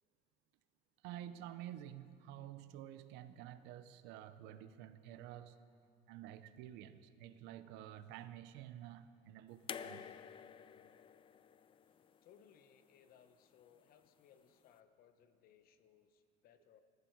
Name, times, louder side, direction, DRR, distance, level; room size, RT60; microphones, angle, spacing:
voice 1, 1.0-5.6 6.1-10.1, right 11 dB, 70° right, 0.7 m, -50 dB
sound 1, 4.6-6.7 9.6-9.8 10.9-11.3 11.8-12.8, right 3 dB, 90° right, 2.6 m, -78 dB
sound 2, 9.7-12.8 14.0-14.1, left 8 dB, 30° left, 0.4 m, -50 dB
voice 2, 12.2-16.8, left 8 dB, 55° left, 1.0 m, -66 dB
19.5 x 14.5 x 4.7 m
cardioid pair, 125°, 18 cm